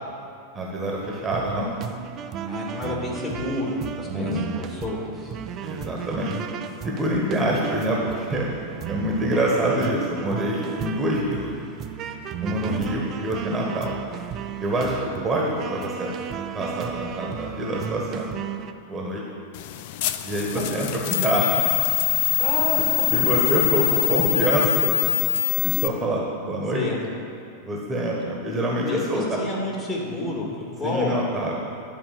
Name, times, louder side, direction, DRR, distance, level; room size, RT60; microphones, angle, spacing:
voice 1, 0.5-1.7 4.1-4.5 5.6-6.4 6.8-8.5 8.9-11.5 12.4-14.0 14.6-16.1 16.5-18.3 18.9-19.2 20.2-21.6 22.3-22.4 23.1-24.9 25.6-26.8 27.6-29.4 30.8-31.6, right 1 dB, 15° right, -2 dB, 1.4 m, -26 dB
sound 1, 1.0-18.7, right 8 dB, 30° right, 0.4 m, -35 dB
voice 2, 2.4-5.3 7.4-7.7 12.5-12.8 20.5-20.6 22.4-22.8 26.7-27.0 28.8-31.2, left 2 dB, 20° left, -3 dB, 2.3 m, -30 dB
sound 2, 19.5-25.9, left 20 dB, 50° left, 0.4 m, -23 dB
10.0 x 4.9 x 7.5 m, 2.5 s
figure-of-eight pair, 90°, 0 cm